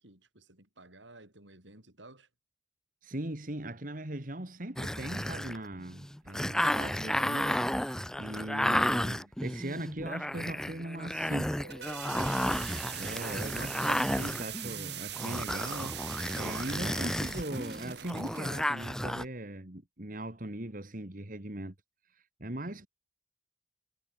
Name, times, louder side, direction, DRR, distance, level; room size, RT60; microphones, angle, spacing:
voice 1, 0.0-2.3 12.8-13.6, right 2 dB, 85° right, 7.1 m, -53 dB
voice 2, 3.0-11.6 12.1-21.7 22.1-22.9, right 1 dB, 45° right, 2.1 m, -40 dB
sound 1, 4.8-19.2, left 1 dB, 5° left, 0.7 m, -32 dB
sound 2, 11.5-18.7, right 10 dB, 65° right, 4.0 m, -41 dB
head